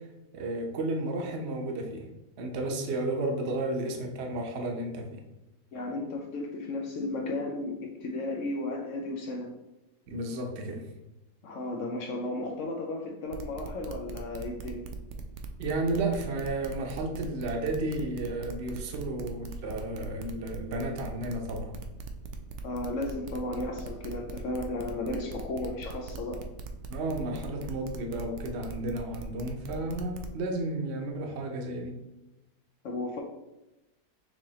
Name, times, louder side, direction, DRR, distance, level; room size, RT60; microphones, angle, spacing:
voice 1, 0.3-2.1 2.4-5.2 10.1-10.8 15.6-21.7 26.9-31.9, right 2 dB, 50° right, 2 dB, 0.8 m, -32 dB
voice 2, 5.7-9.6 11.4-14.9 22.6-26.4 32.8-33.2, left 2 dB, 70° left, 2 dB, 0.7 m, -34 dB
sound 1, 13.3-30.3, right 4 dB, 85° right, 0.6 m, -41 dB
6.3 x 3.0 x 2.8 m, 0.97 s
omnidirectional pair, 1.8 m